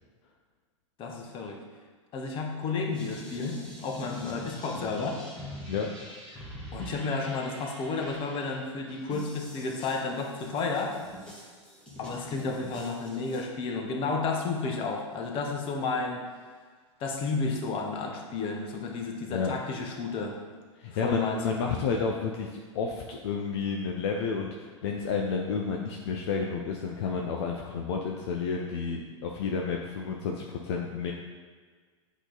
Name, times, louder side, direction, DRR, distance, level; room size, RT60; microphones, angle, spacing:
voice 1, 1.0-1.6 2.1-5.2 6.3-11.0 12.0-16.2 17.0-20.4 21.0-21.4, left 4 dB, 35° left, 2 dB, 1.0 m, -32 dB
abstract mashed jungle-hop.R, 2.9-13.4, equal, 5° left, 1.4 m, -45 dB
voice 2, 20.8-31.1, left 5 dB, 55° left, 1 dB, 0.6 m, -31 dB
8.0 x 3.1 x 3.9 m, 1.5 s
figure-of-eight pair, 95°, 16 cm